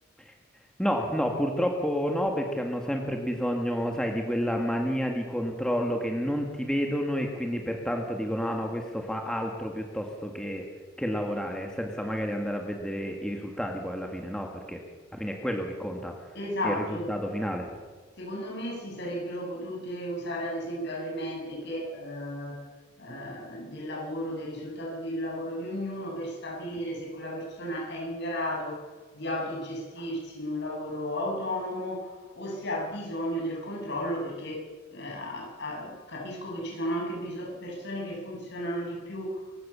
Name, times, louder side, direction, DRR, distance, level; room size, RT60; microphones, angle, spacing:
voice 1, 0.8-10.6 11.0-14.8 15.1-16.1 16.6-17.7, equal, 5° left, 2 dB, 2.0 m, -30 dB
voice 2, 16.3-17.1 18.2-22.6 23.0-28.9 29.1-34.6 34.9-39.5, equal, 55° left, -1 dB, 7.6 m, -34 dB
27.5 x 16.0 x 7.1 m, 1.5 s
head